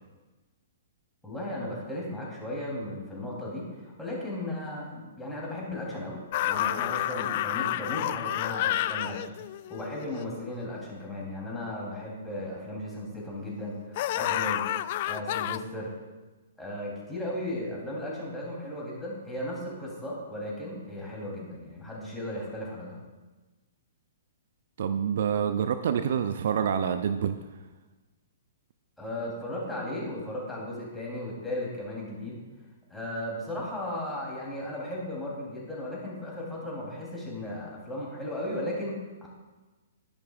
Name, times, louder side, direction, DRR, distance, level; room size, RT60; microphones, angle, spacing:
voice 1, 1.2-9.3 9.7-14.6 15.0-15.9 16.6-23.0 29.0-32.4 32.9-39.3, left 1 dB, 5° left, -4 dB, 3.2 m, -36 dB
sound 1, 6.3-10.7 14.0-15.6, left 13 dB, 45° left, 0.3 m, -30 dB
voice 2, 24.8-27.4, right 8 dB, 55° right, 10 dB, 0.5 m, -27 dB
12.0 x 10.5 x 2.4 m, 1.2 s
figure-of-eight pair, 115°, 0 cm